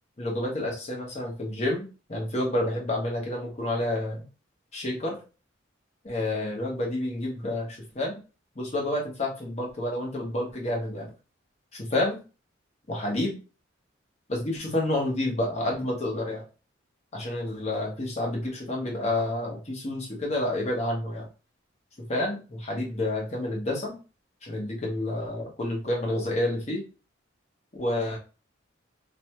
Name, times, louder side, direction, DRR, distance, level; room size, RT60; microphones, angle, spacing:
voice 1, 0.2-1.8 2.1-4.2 4.7-5.2 6.0-8.2 8.6-11.1 11.7-12.2 12.9-13.3 14.3-16.4 17.1-21.3 22.0-24.0 24.4-26.8 27.8-28.2, left 1 dB, 35° left, -1 dB, 0.8 m, -29 dB
2.6 x 2.2 x 2.8 m, 0.33 s
head